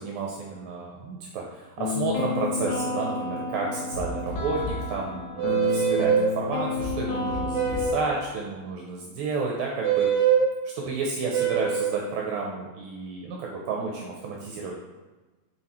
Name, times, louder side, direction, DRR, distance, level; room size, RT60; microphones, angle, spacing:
voice 1, 0.0-10.3 10.8-14.7, right 4 dB, 75° right, -1 dB, 2.4 m, -31 dB
sound 1, 1.8-7.9, left 4 dB, 70° left, 2.2 m, -31 dB
sound 2, 3.9-4.9 6.8-8.0, equal, 50° left, 2.4 m, -34 dB
sound 3, 5.4-6.3 7.5-8.1 9.8-10.5 11.3-12.0, right 8 dB, 55° right, 2.3 m, -23 dB
6.4 x 4.5 x 4.2 m, 1.2 s
omnidirectional pair, 4.4 m